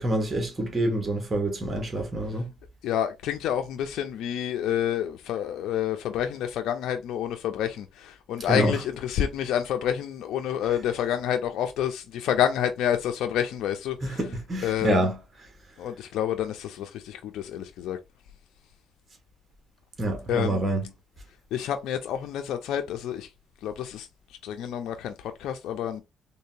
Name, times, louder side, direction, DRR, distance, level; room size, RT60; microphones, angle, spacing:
voice 1, 0.0-2.5 8.5-8.7 14.0-15.2 20.0-20.9, right 1 dB, 25° right, 1.3 m, -26 dB
voice 2, 2.8-14.2 14.6-15.1 15.8-18.0 20.3-20.6 21.5-23.3 23.6-24.1 24.4-26.0, left 10 dB, 85° left, 0.4 m, -28 dB
3.6 x 2.7 x 2.6 m
cardioid pair, 90°, 0 cm